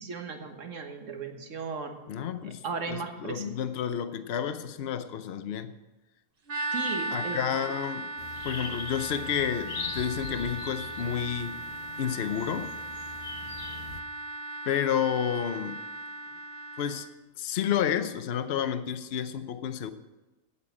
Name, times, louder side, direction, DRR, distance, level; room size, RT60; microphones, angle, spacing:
voice 1, 0.0-2.0 2.6-3.5 6.7-7.4, right 5 dB, 60° right, 1.6 m, -36 dB
voice 2, 2.1-5.7 7.1-8.1 8.4-11.6 12.0-12.7 14.7-15.8 16.8-17.1 17.4-19.9, left 9 dB, 55° left, 0.8 m, -30 dB
sound 1, 6.5-17.1, right 2 dB, 40° right, 1.2 m, -37 dB
sound 2, 8.2-14.0, left 5 dB, 80° left, 1.4 m, -41 dB
9.0 x 8.4 x 7.5 m
omnidirectional pair, 1.5 m